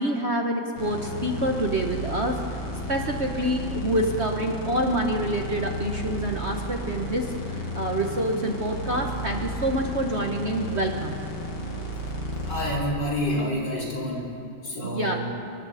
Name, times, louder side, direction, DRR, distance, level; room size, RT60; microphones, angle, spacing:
voice 1, 0.0-2.6 2.9-11.2 14.8-15.2, right 1 dB, 40° right, 2 dB, 1.2 m, -27 dB
sound 1, 0.8-12.8, left 1 dB, 80° left, 3.3 m, -33 dB
voice 2, 12.5-14.3 14.6-15.3, equal, 60° left, -4 dB, 4.3 m, -28 dB
23.5 x 23.0 x 4.9 m, 2.8 s
omnidirectional pair, 2.1 m